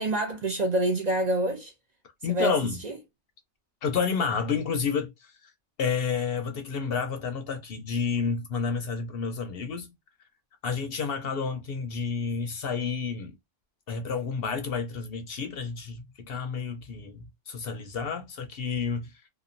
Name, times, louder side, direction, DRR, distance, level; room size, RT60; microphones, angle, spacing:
voice 1, 0.0-1.7 2.3-2.6 2.8-3.0, right 1 dB, 45° right, 0.6 m, -26 dB
voice 2, 2.2-2.8 3.8-5.5 5.8-9.9 10.6-13.4 13.9-19.2, left 5 dB, 60° left, 0.7 m, -30 dB
2.9 x 2.2 x 2.5 m
omnidirectional pair, 1.2 m